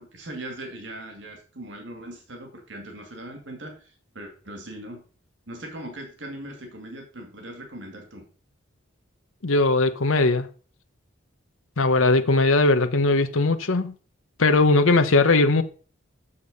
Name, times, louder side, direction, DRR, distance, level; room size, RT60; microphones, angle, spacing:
voice 1, 0.0-5.0 5.5-8.3, right 1 dB, 65° right, 2.4 m, -40 dB
voice 2, 9.4-10.5 11.8-13.9 14.4-15.6, left 3 dB, 85° left, 0.9 m, -19 dB
7.3 x 6.8 x 5.4 m
head